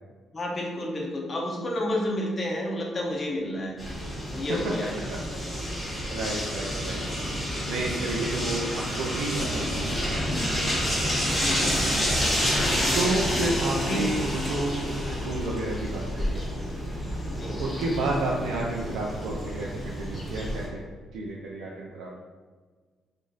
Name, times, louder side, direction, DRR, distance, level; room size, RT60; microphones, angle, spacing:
voice 1, 0.3-3.8 4.3-4.9 11.3-12.0 13.7-14.0 17.3-17.6, left 1 dB, 35° left, -1 dB, 0.8 m, -31 dB
sound 1, 3.8-20.7, equal, 15° left, 1.2 m, -29 dB
voice 2, 6.1-7.0 7.6-10.4 12.9-14.8 15.2-16.7 17.6-20.8 21.1-22.2, right 2 dB, 90° right, -3 dB, 0.5 m, -31 dB
3.0 x 2.5 x 3.9 m, 1.5 s
cardioid pair, 90°, 0 cm